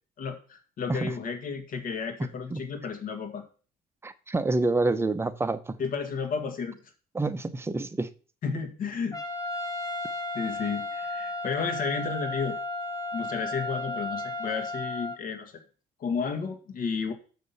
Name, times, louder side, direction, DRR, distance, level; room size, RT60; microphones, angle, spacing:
voice 1, 0.2-3.4 5.8-6.8 8.4-9.2 10.3-12.6 13.1-15.5 16.0-17.1, left 5 dB, 55° left, 2.0 m, -32 dB
voice 2, 2.2-2.6 4.0-5.8 7.1-8.1, right 2 dB, 15° right, 0.7 m, -28 dB
Trumpet, 9.1-15.2, left 2 dB, 20° left, 1.3 m, -34 dB
6.4 x 5.9 x 7.0 m
cardioid pair, 110°, 17 cm